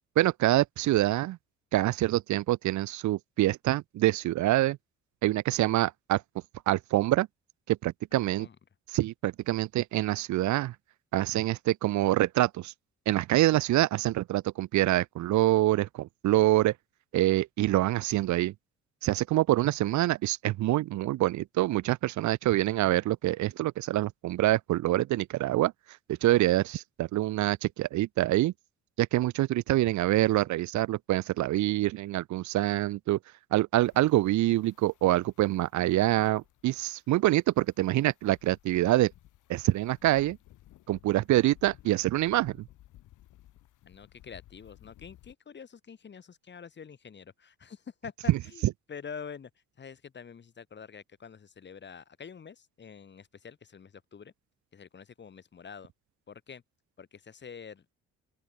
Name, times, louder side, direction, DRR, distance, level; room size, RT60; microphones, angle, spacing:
voice 1, 0.2-1.4 1.7-4.8 5.2-6.2 6.7-7.3 7.7-8.5 8.9-10.7 11.1-12.7 13.1-16.7 17.1-18.5 19.0-25.7 26.2-28.5 29.0-33.2 33.5-39.1 39.5-40.4 40.9-42.6, right 16 dB, 70° right, 0.6 m, -26 dB
sound 1, 33.8-45.3, left 14 dB, 80° left, 2.0 m, -57 dB
voice 2, 43.9-49.5 49.8-54.3 54.7-55.9 56.3-56.6 57.0-57.9, left 6 dB, 35° left, 1.3 m, -46 dB
open air
cardioid pair, 90°, 30 cm